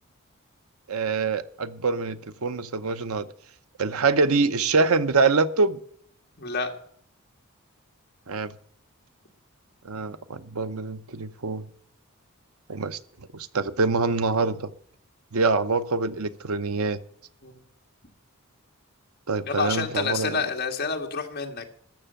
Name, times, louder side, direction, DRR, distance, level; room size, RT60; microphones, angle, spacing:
voice 1, 0.9-3.2 3.8-5.8 8.3-8.5 9.8-11.7 12.7-13.0 13.3-14.7 15.3-17.0 19.3-20.4, right 4 dB, 85° right, 12 dB, 0.8 m, -25 dB
voice 2, 6.4-6.7 17.4-17.6 19.5-21.7, left 4 dB, 45° left, 3 dB, 1.8 m, -28 dB
14.0 x 6.7 x 8.8 m, 0.63 s
head